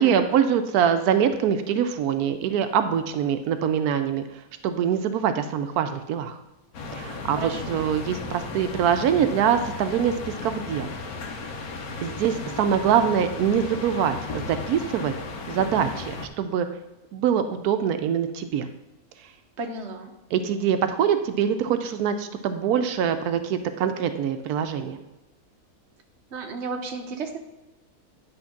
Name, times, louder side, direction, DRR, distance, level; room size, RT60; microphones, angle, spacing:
voice 1, 0.0-4.2 4.6-6.3 6.9-10.1 10.4-10.9 12.0-15.1 15.5-16.7 17.1-18.7 20.3-25.0, right 8 dB, 90° right, 8 dB, 1.1 m, -24 dB
sound 1, 6.7-16.3, left 3 dB, 75° left, 1.4 m, -35 dB
voice 2, 7.4-7.8 19.6-20.1 26.3-27.4, right 3 dB, 50° right, 4 dB, 1.2 m, -33 dB
10.5 x 3.5 x 5.8 m, 1.0 s
omnidirectional pair, 1.6 m